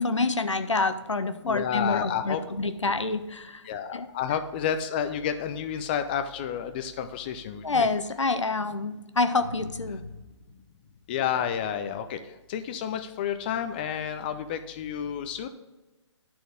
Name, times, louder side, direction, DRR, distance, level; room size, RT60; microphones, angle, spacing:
voice 1, 0.0-3.7 3.9-4.1 7.6-10.1, left 3 dB, 80° left, 10 dB, 0.7 m, -27 dB
voice 2, 1.4-2.4 3.7-7.9 11.1-12.2 12.5-15.5, left 8 dB, 20° left, 8 dB, 0.3 m, -30 dB
11.0 x 4.3 x 5.0 m, 1.1 s
figure-of-eight pair, 135°, 15 cm